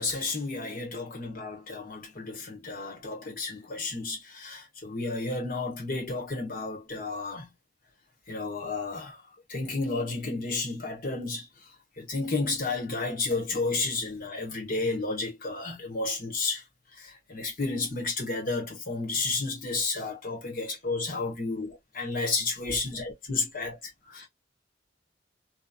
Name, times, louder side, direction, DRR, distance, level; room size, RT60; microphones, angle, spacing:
voice 1, 0.0-7.5 8.3-9.2 9.5-11.7 12.0-16.6 17.0-23.8 24.1-24.3, left 3 dB, 50° left, 1.1 m, -32 dB
2.8 x 2.2 x 2.3 m
head